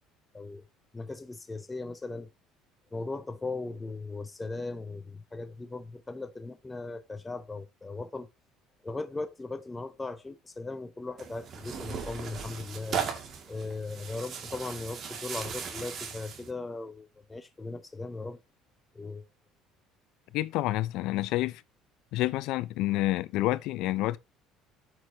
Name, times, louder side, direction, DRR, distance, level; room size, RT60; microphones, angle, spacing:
voice 1, 0.3-0.6 0.9-2.3 2.9-8.3 8.8-13.0 13.5-18.4 18.9-19.3, left 3 dB, 15° left, 0.7 m, -38 dB
Tearing, 11.2-16.5, right 7 dB, 45° right, 2.3 m, -37 dB
voice 2, 20.3-21.6 22.1-24.2, left 17 dB, 75° left, 0.6 m, -28 dB
13.0 x 6.3 x 2.9 m
cardioid pair, 110°, 0 cm